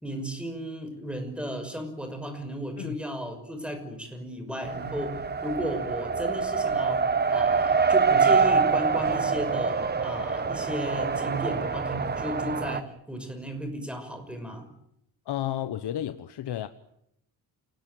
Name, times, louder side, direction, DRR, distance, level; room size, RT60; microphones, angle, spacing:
voice 1, 0.0-14.7, equal, 5° right, 6.0 m, -34 dB
Race car auto racing, 4.6-12.8, right 5 dB, 25° right, 1.0 m, -25 dB
voice 2, 15.3-16.7, left 11 dB, 80° left, 1.2 m, -32 dB
28.5 x 19.5 x 9.4 m
wide cardioid pair, 155°, 40 cm